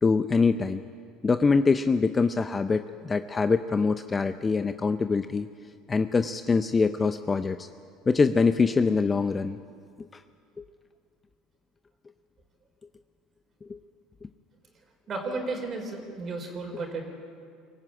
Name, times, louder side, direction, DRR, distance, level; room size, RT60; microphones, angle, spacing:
voice 1, 0.0-0.8 1.2-5.5 5.9-7.7 8.1-9.6 10.1-10.2 10.6-10.7 13.6-13.8, left 4 dB, 25° left, 10 dB, 0.6 m, -24 dB
voice 2, 15.1-17.0, right 3 dB, 40° right, 2 dB, 4.5 m, -33 dB
23.5 x 15.0 x 8.8 m, 2.3 s
supercardioid pair, 105°, 0 cm